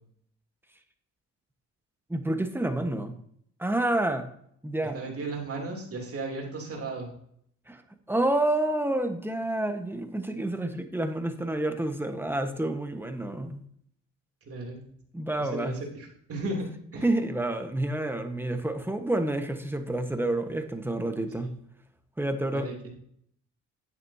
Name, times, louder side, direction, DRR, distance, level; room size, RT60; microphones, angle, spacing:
voice 1, 2.1-3.2 3.6-4.3 4.6-5.0 7.7-7.8 8.1-13.6 15.1-15.8 17.0-21.5 22.2-22.7, right 1 dB, 5° right, 6 dB, 1.3 m, -29 dB
voice 2, 4.9-7.1 14.4-14.8 15.4-17.0 21.4-21.5 22.5-22.9, right 2 dB, 50° right, 0 dB, 3.1 m, -35 dB
10.5 x 8.6 x 2.8 m, 0.67 s
cardioid pair, 90°, 30 cm